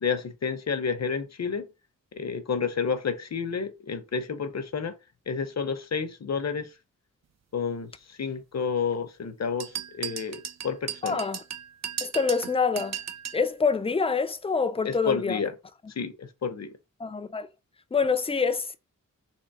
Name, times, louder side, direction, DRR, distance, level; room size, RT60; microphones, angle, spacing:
voice 1, 0.0-1.7 2.1-5.0 5.3-6.7 7.5-11.2 14.8-15.5 16.0-16.7, left 5 dB, 55° left, 0.7 m, -30 dB
sound 1, 9.6-13.5, right 8 dB, 55° right, 0.5 m, -36 dB
voice 2, 11.0-11.4 12.0-13.0 13.3-15.4 17.0-17.5 17.9-18.8, left 5 dB, 20° left, 0.4 m, -26 dB
3.7 x 2.9 x 4.1 m
wide cardioid pair, 100°, 33 cm